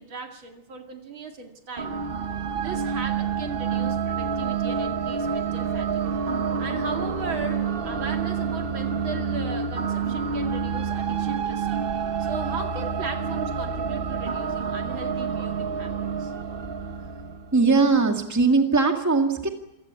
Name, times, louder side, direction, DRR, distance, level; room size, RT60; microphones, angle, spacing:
voice 1, 0.0-2.1 2.5-6.1 6.6-11.7 12.2-16.3, right 4 dB, 70° right, 4 dB, 3.0 m, -37 dB
sound 1, 1.8-18.0, right 6 dB, 45° right, 0.7 m, -28 dB
voice 2, 17.5-19.5, right 4 dB, 10° right, 4 dB, 1.9 m, -20 dB
27.0 x 16.5 x 8.4 m, 0.84 s
omnidirectional pair, 2.3 m